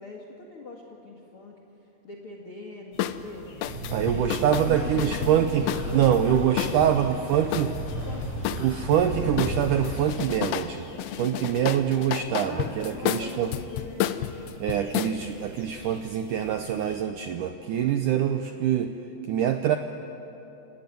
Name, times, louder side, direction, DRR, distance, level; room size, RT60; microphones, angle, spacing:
voice 1, 0.0-1.6 2.0-3.5 3.9-8.6 12.4-14.1, left 3 dB, 45° left, 0 dB, 2.2 m, -41 dB
sound 1, 2.9-17.0, left 3 dB, 60° left, 4.0 m, -48 dB
sound 2, 3.0-3.2 3.6-6.9 7.5-9.0 9.4-10.7 11.0-15.1, left 12 dB, 75° left, 2.4 m, -31 dB
sound 3, 3.6-10.2, right 1 dB, 50° right, 8.2 m, -34 dB
voice 2, 3.9-5.7 5.9-7.7 8.6-10.9 11.2-13.5 14.6-18.9 19.3-19.8, right 10 dB, 80° right, 7 dB, 1.9 m, -24 dB
29.0 x 17.5 x 9.3 m, 2.9 s
omnidirectional pair, 4.6 m